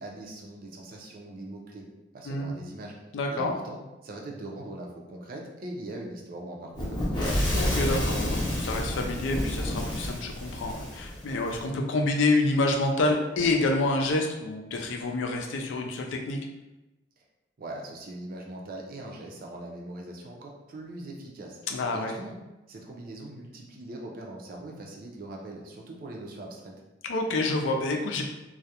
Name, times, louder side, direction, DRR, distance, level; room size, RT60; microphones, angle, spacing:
voice 1, 0.0-1.8 2.1-2.9 3.3-7.3 17.6-21.6 21.9-22.3 22.7-26.7, right 1 dB, 50° right, 0 dB, 0.4 m, -41 dB
voice 2, 3.1-3.5 7.5-16.4 21.7-22.1 27.0-28.2, left 2 dB, 75° left, 2 dB, 0.4 m, -27 dB
Fire / Explosion, 6.7-11.6, equal, 25° left, 0.7 m, -29 dB
2.3 x 2.0 x 2.8 m, 1.0 s
head